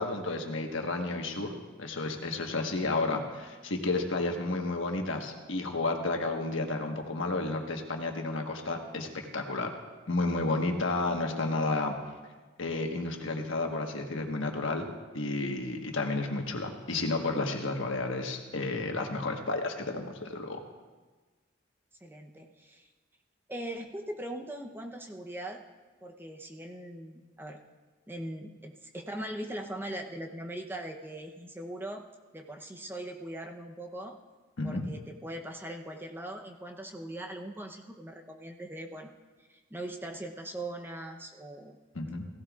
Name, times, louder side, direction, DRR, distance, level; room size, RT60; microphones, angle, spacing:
voice 1, 0.0-1.5 1.8-9.7 10.1-12.0 12.6-14.9 15.1-20.6 34.6-34.9 41.9-42.3, left 2 dB, 85° left, 3 dB, 1.3 m, -31 dB
voice 2, 22.0-22.9 23.5-25.6 26.0-27.6 28.1-32.0 32.3-34.2 34.6-39.1 39.5-41.8, right 1 dB, 10° right, 2 dB, 0.7 m, -40 dB
16.0 x 16.0 x 2.4 m, 1.3 s
head